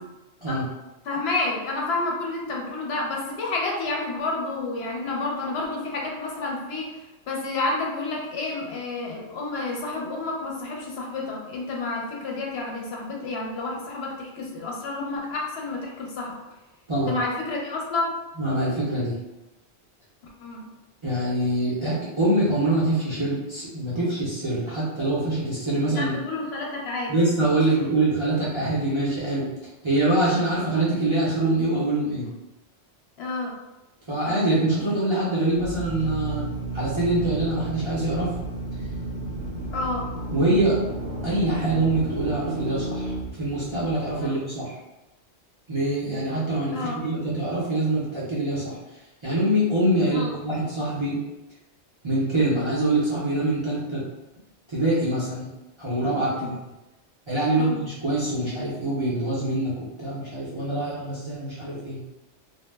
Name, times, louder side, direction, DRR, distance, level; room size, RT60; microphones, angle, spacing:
voice 1, 1.0-6.9 7.3-16.3 17.1-18.1 20.4-20.7 26.0-27.1 33.2-33.5 39.7-40.0 44.2-44.3 46.7-47.0 50.0-50.3 56.3-56.5 57.6-57.8, left 2 dB, 70° left, -2 dB, 0.8 m, -30 dB
voice 2, 18.4-19.2 21.0-26.1 27.1-29.5 29.8-32.3 34.1-36.4 36.7-38.3 40.3-40.8 41.2-43.1 43.4-44.8 45.7-48.8 49.2-51.2 52.0-54.0 54.7-55.5 55.8-56.5 57.3-62.0, right 1 dB, 35° right, -9 dB, 0.5 m, -24 dB
Drill, 35.5-44.1, right 1 dB, 65° right, 0.8 m, -33 dB
2.1 x 2.0 x 3.2 m, 1.0 s
omnidirectional pair, 1.2 m